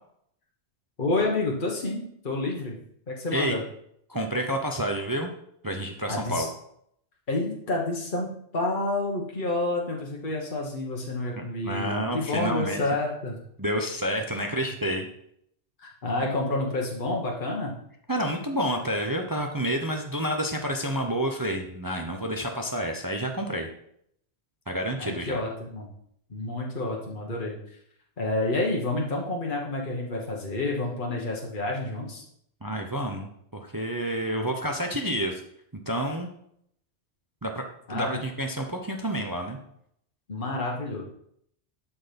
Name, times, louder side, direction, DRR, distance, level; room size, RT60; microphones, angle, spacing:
voice 1, 1.0-2.7 3.1-3.6 6.1-6.5 7.3-13.4 14.4-14.6 15.8-17.7 25.0-25.9 26.3-27.5 28.2-32.2 37.9-38.2 40.3-41.0, left 2 dB, 45° left, -1 dB, 1.5 m, -29 dB
voice 2, 4.1-5.3 5.6-6.5 11.4-12.9 13.6-15.1 18.1-23.7 24.7-25.4 32.6-35.4 35.9-36.3 37.4-37.6 37.9-39.6, equal, 20° right, 3 dB, 0.7 m, -29 dB
12.0 x 4.4 x 5.2 m, 0.71 s
omnidirectional pair, 1.2 m